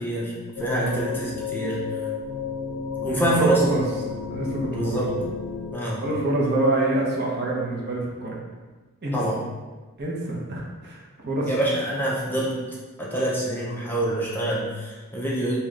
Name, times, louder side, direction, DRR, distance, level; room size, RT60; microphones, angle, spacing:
voice 1, 0.0-2.0 3.0-3.6 4.7-5.1 5.7-6.0 9.1-9.4 11.5-12.6 13.0-15.6, right 1 dB, 10° left, -5 dB, 0.5 m, -26 dB
sound 1, 0.6-5.7, left 5 dB, 75° left, 0.4 m, -32 dB
voice 2, 0.7-1.0 3.0-3.8 4.3-5.1 6.0-8.4 9.0-9.2 10.0-11.5, right 2 dB, 50° right, -3 dB, 0.8 m, -26 dB
3.2 x 3.0 x 3.6 m, 1.3 s
head